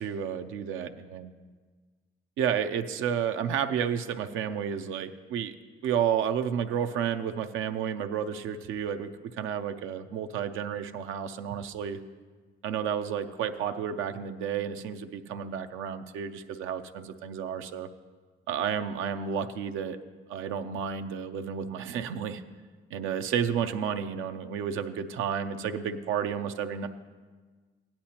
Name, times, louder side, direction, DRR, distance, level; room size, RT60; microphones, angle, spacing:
voice 1, 0.0-1.3 2.4-5.5 5.8-12.0 12.6-17.9 18.5-20.0 20.3-22.4 22.9-26.9, right 8 dB, 90° right, 8 dB, 0.6 m, -31 dB
16.0 x 10.0 x 2.9 m, 1.4 s
cardioid pair, 90°, 20 cm